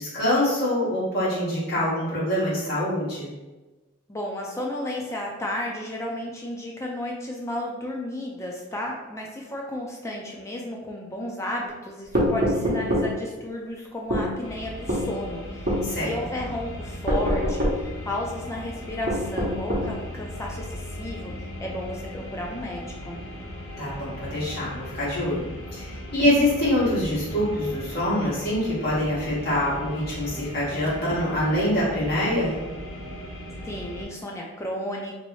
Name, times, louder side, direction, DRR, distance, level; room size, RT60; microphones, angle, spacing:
voice 1, 0.0-3.3 15.8-16.1 23.8-32.5, left 1 dB, 45° left, -8 dB, 1.4 m, -25 dB
voice 2, 4.1-23.2 33.7-35.2, left 1 dB, 15° left, -1 dB, 0.3 m, -33 dB
sound 1, 12.1-13.1 14.1-14.3 14.9-15.1 15.7-15.8 17.1-17.8 19.1-19.9, equal, 45° right, 0.8 m, -23 dB
sound 2, 14.4-34.1, equal, 80° left, 0.9 m, -37 dB
3.1 x 2.7 x 3.1 m, 1.2 s
head